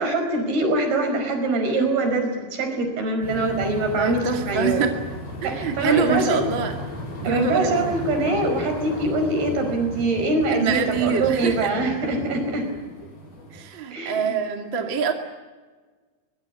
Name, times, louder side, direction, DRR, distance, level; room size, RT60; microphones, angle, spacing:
voice 1, 0.0-4.8 5.4-6.4 7.2-12.7 13.9-14.4, right 2 dB, 60° right, 5 dB, 7.0 m, -24 dB
sound 1, 3.2-13.6, equal, 60° left, 9.6 m, -35 dB
voice 2, 4.0-4.9 5.4-6.8 7.2-7.9 10.5-11.7 13.5-15.1, right 6 dB, 35° right, 4 dB, 2.2 m, -24 dB
23.5 x 22.5 x 9.6 m, 1.4 s
omnidirectional pair, 5.1 m